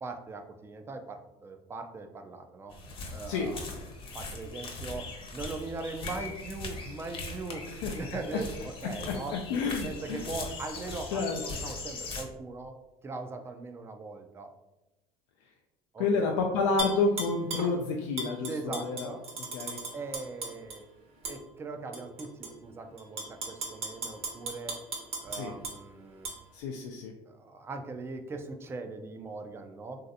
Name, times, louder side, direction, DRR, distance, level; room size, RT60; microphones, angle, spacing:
voice 1, 0.0-2.7 3.1-3.8 4.1-5.1 5.3-7.6 7.9-9.4 9.8-12.7 13.0-14.5 15.9-16.3 18.4-19.2 19.9-20.9 21.3-24.8 25.2-26.3 27.3-30.0, right 3 dB, 15° right, 6 dB, 0.3 m, -40 dB
sound 1, 2.7-12.2, left 3 dB, 40° left, 0.7 m, -40 dB
voice 2, 9.1-10.2 11.1-11.4 16.0-19.1 19.5-19.8 25.3-25.5 26.5-27.1, left 4 dB, 75° left, 1 dB, 0.4 m, -29 dB
Tap / Glass, 16.8-17.7 18.2-20.8 21.2-21.4 21.9-22.5 23.0-25.8 26.2-26.4, right 3 dB, 45° right, 0.9 m, -36 dB
3.1 x 2.7 x 2.5 m, 1.0 s
supercardioid pair, 95°, 15 cm